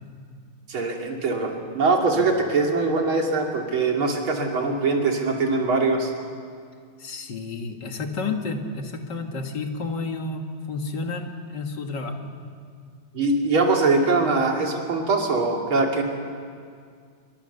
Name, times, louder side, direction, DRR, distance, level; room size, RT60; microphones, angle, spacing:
voice 1, 0.7-6.1 13.1-16.0, right 3 dB, 75° right, 1 dB, 3.6 m, -22 dB
voice 2, 7.0-12.2, left 3 dB, 55° left, 4 dB, 2.5 m, -31 dB
26.0 x 23.0 x 6.8 m, 2.1 s
omnidirectional pair, 2.3 m